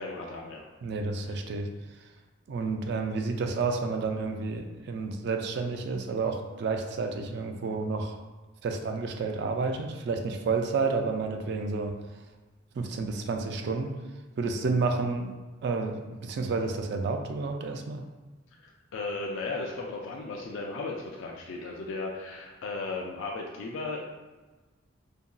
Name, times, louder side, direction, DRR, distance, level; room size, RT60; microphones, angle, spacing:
voice 1, 0.0-0.6 1.3-1.4 18.6-24.0, left 3 dB, 75° left, 0 dB, 0.3 m, -36 dB
voice 2, 0.8-1.7 2.5-8.2 8.6-12.0 12.7-14.0 14.4-15.3 15.6-18.0, right 4 dB, 60° right, 4 dB, 0.3 m, -30 dB
2.8 x 2.6 x 2.2 m, 1.2 s
head